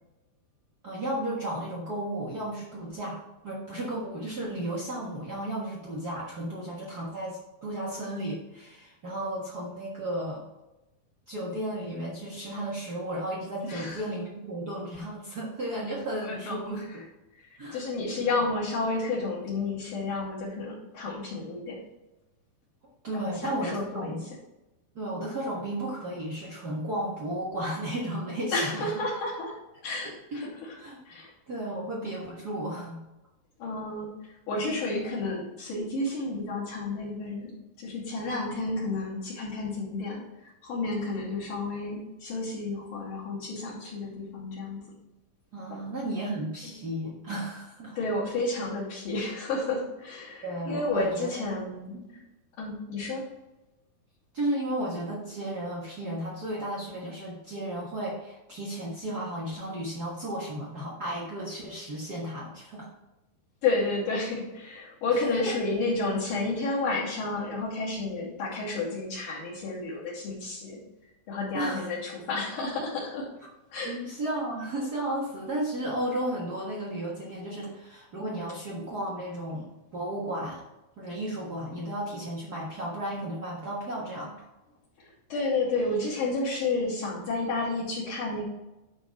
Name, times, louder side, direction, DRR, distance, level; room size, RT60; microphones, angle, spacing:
voice 1, 0.8-10.4 11.3-16.8 17.6-17.9 18.1-18.3 23.0-24.2 24.9-28.9 30.0-30.1 30.8-31.0 31.5-33.0 45.5-48.0 50.4-51.3 52.1-52.2 54.3-62.9 65.1-65.6 71.5-71.9 73.8-80.6 81.0-84.5, right 1 dB, 90° right, -5 dB, 0.8 m, -34 dB
voice 2, 13.6-14.0 16.2-17.0 17.4-21.8 23.1-24.2 28.5-29.6 29.8-30.7 31.1-31.3 33.6-34.1 34.5-37.5 37.8-44.8 45.7-45.8 46.6-46.7 48.0-51.9 52.6-53.3 63.6-70.8 71.3-73.3 73.7-74.0 85.3-88.4, left 3 dB, 55° left, -9 dB, 3.9 m, -31 dB
11.5 x 4.4 x 4.7 m, 1.0 s
omnidirectional pair, 4.5 m